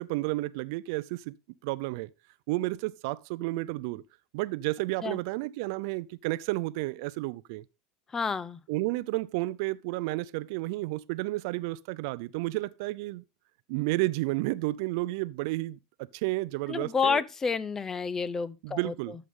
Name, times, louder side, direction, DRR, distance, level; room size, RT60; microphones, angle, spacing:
voice 1, 0.0-1.3 1.6-2.1 2.5-4.0 4.3-7.6 8.7-13.2 13.7-17.2 18.6-19.2, right 20 dB, 70° right, 0.6 m, -31 dB
voice 2, 8.1-8.6 16.7-18.9, left 5 dB, 20° left, 0.8 m, -29 dB
11.5 x 7.8 x 3.7 m
supercardioid pair, 130°, 2 cm